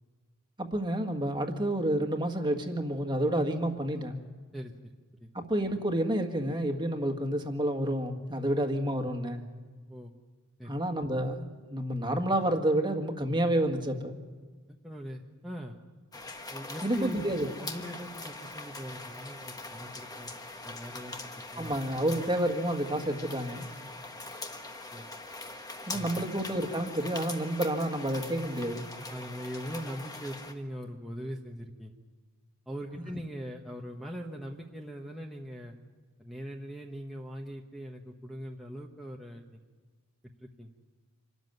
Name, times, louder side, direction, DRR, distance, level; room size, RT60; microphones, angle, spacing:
voice 1, 0.6-4.2 5.3-9.4 10.7-14.2 16.8-17.5 21.6-23.7 25.9-28.9, right 1 dB, 20° right, 5 dB, 1.8 m, -29 dB
voice 2, 14.8-15.8 16.5-17.3 17.6-20.3 20.7-21.1 21.5-21.7 24.9-25.1 25.9-26.2 29.1-31.9 32.7-35.7 36.2-39.6 40.4-40.7, equal, ahead, -2 dB, 1.2 m, -41 dB
Rain on Veranda, 16.1-30.5, left 2 dB, 15° left, 1.4 m, -42 dB
26.0 x 13.5 x 9.4 m, 1.5 s
head